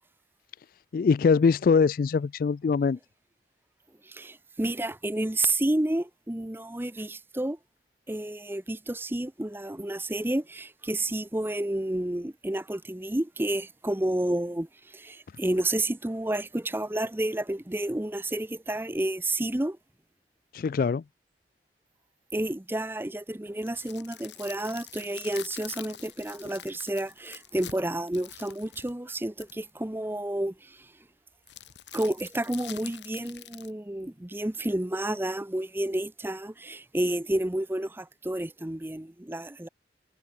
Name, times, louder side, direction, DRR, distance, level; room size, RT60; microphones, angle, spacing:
voice 1, 0.9-3.0 20.5-21.0, left 5 dB, 50° left, 0.3 m, -22 dB
voice 2, 4.0-7.6 8.1-19.8 22.3-30.9 31.9-39.7, right 1 dB, 10° right, 0.7 m, -30 dB
sound 1, 23.5-29.7 31.5-33.7, left 10 dB, 85° left, 6.5 m, -46 dB
head